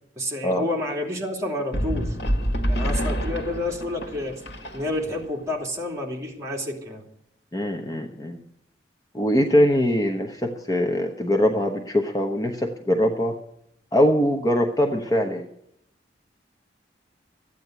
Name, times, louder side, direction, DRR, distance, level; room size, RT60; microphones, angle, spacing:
voice 1, 0.2-2.1 2.7-4.3 4.7-7.0, left 1 dB, 15° right, -1 dB, 2.7 m, -29 dB
sound 1, 1.7-5.3, equal, 85° left, 1.8 m, -27 dB
voice 2, 7.5-8.4 9.1-13.4 13.9-15.4, equal, 20° left, 3 dB, 1.0 m, -22 dB
13.5 x 9.3 x 8.1 m, 0.75 s
head